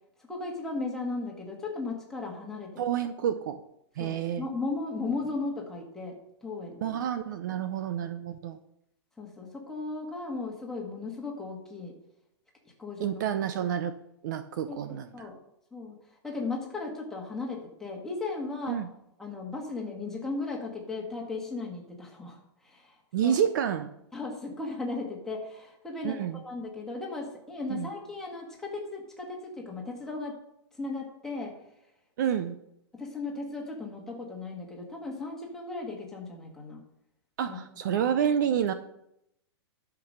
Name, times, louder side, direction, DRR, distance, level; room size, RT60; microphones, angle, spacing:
voice 1, 0.3-2.7 4.0-6.2 6.4-7.0 7.5-7.6 9.2-11.9 12.8-13.2 14.7-15.4 15.7-15.9 16.2-18.8 19.2-22.4 22.6-23.0 23.2-23.4 24.1-30.4 30.8-31.5 32.9-36.8 37.5-37.6 37.8-38.0, left 3 dB, 5° left, -1 dB, 1.7 m, -36 dB
voice 2, 2.8-3.6 4.0-4.5 6.8-8.6 13.0-14.0 14.2-15.3 18.7-18.9 23.1-23.9 26.0-26.4 27.7-27.9 32.2-32.6 37.4-38.7, right 9 dB, 45° right, 11 dB, 0.6 m, -29 dB
12.0 x 6.0 x 6.6 m, 0.80 s
hypercardioid pair, 170°, 14 cm